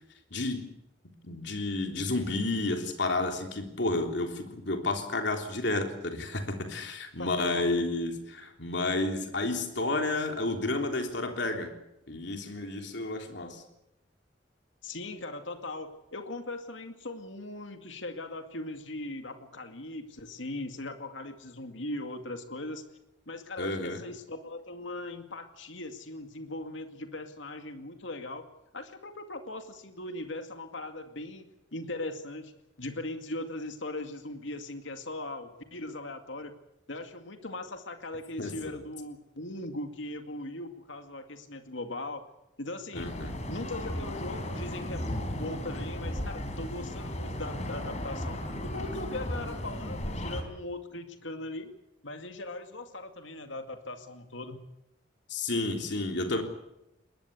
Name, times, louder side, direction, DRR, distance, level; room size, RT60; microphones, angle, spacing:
voice 1, 0.3-0.7 1.2-11.7 12.1-13.6 23.6-24.0 38.4-38.8 42.9-43.4 55.3-56.4, left 2 dB, 65° left, 4 dB, 3.5 m, -31 dB
voice 2, 7.2-7.7 14.8-22.8 23.3-28.5 28.7-32.5 32.8-36.5 36.9-42.3 42.6-43.1 43.5-51.7 52.0-54.6, left 2 dB, 85° left, 6 dB, 2.2 m, -39 dB
sound 1, 42.9-50.4, left 1 dB, 40° left, 4.1 m, -35 dB
22.5 x 19.5 x 8.3 m, 0.88 s
head